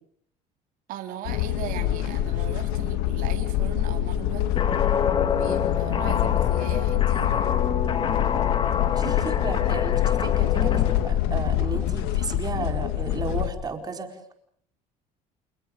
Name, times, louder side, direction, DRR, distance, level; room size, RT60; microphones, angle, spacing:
voice 1, 0.9-4.6 5.3-7.5, right 11 dB, 65° right, 5 dB, 3.5 m, -38 dB
sound 1, 1.3-13.5, left 13 dB, 90° left, 2.0 m, -25 dB
Guitar, 4.6-11.1, left 7 dB, 35° left, 2.3 m, -27 dB
voice 2, 8.9-14.2, right 4 dB, 25° right, 5 dB, 4.6 m, -34 dB
29.5 x 29.0 x 5.3 m, 0.63 s
cardioid pair, 130°, 15 cm